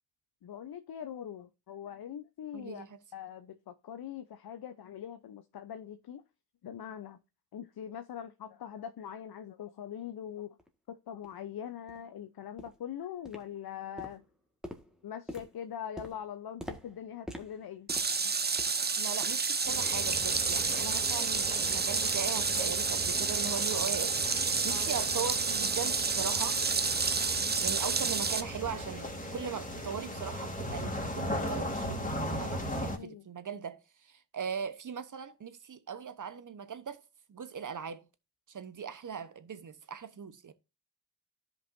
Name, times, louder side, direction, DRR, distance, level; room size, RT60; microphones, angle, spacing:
voice 1, 0.4-2.8 3.1-6.2 6.6-7.2 7.5-10.5 10.9-14.2 15.0-17.9 24.7-24.9 32.9-33.2, left 9 dB, 50° left, 0.8 m, -42 dB
voice 2, 2.5-3.0 18.2-18.3 19.0-26.6 27.2-37.0 37.3-38.1 38.5-40.5, right 7 dB, 40° right, 1.1 m, -39 dB
sound 1, 10.6-10.7 11.2-11.4 11.9-12.0 12.6-12.9 13.2-13.7 14.0-18.9 19.2-19.5 19.9-20.0 20.6-20.7, equal, ahead, 1.7 m, -47 dB
sound 2, 17.9-28.4, right 4 dB, 20° right, 0.7 m, -30 dB
sound 3, 19.6-33.0, equal, 15° left, 2.6 m, -38 dB
13.0 x 5.4 x 2.7 m
supercardioid pair, 45°, 46 cm